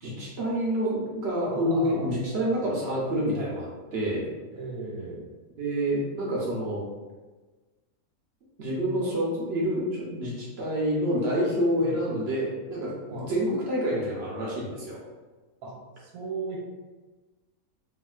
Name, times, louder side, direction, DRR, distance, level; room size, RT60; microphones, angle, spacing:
voice 1, 0.0-4.3 5.6-6.8 8.6-15.0, equal, 60° right, -5 dB, 0.7 m, -28 dB
voice 2, 1.5-2.1 3.3-3.5 4.5-5.3 11.8-12.0 13.1-13.3 15.6-16.6, right 3 dB, 80° right, -3 dB, 1.1 m, -37 dB
3.5 x 2.4 x 2.3 m, 1.3 s
omnidirectional pair, 1.5 m